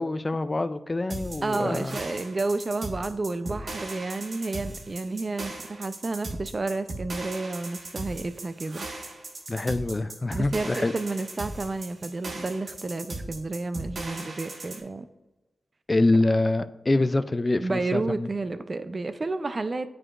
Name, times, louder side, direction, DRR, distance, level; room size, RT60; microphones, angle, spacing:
voice 1, 0.0-2.0 9.5-10.9 15.9-18.3, left 2 dB, 35° left, 12 dB, 0.3 m, -25 dB
sound 1, 1.1-14.8, right 2 dB, 65° right, 1.0 m, -38 dB
voice 2, 1.4-8.9 10.3-15.1 17.6-19.9, right 3 dB, 45° right, 11 dB, 0.4 m, -31 dB
8.7 x 4.7 x 2.4 m, 1.1 s
cardioid pair, 50°, 0 cm